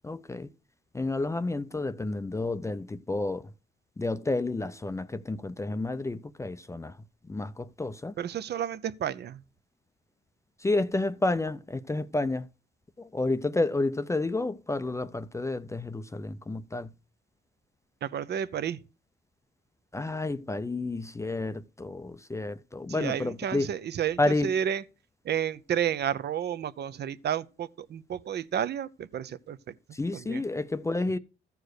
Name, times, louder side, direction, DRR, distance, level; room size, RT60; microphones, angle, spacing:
voice 1, 0.0-0.5 0.9-3.5 4.0-7.0 7.2-8.2 10.6-12.5 13.0-16.9 19.9-23.7 24.2-24.5 29.9-31.2, left 2 dB, 15° left, 0.5 m, -30 dB
voice 2, 8.2-9.4 18.0-18.8 23.0-24.8 25.2-29.6 30.3-30.4, right 9 dB, 55° right, 0.7 m, -31 dB
14.0 x 4.7 x 6.5 m
cardioid pair, 90°, 20 cm